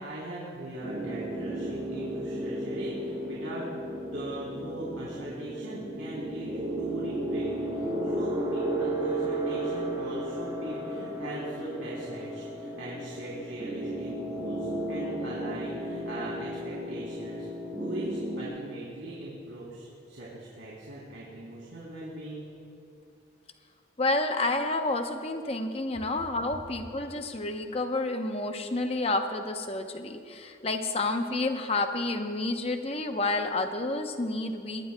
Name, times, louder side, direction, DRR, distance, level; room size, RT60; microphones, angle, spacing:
voice 1, 0.0-3.6 4.1-22.4, right 1 dB, 90° right, -6 dB, 3.1 m, -40 dB
sound 1, 0.8-18.4, right 1 dB, 25° right, 2.4 m, -34 dB
voice 2, 24.0-34.9, left 2 dB, 30° left, 6 dB, 0.8 m, -30 dB
22.5 x 19.0 x 2.2 m, 2.5 s
head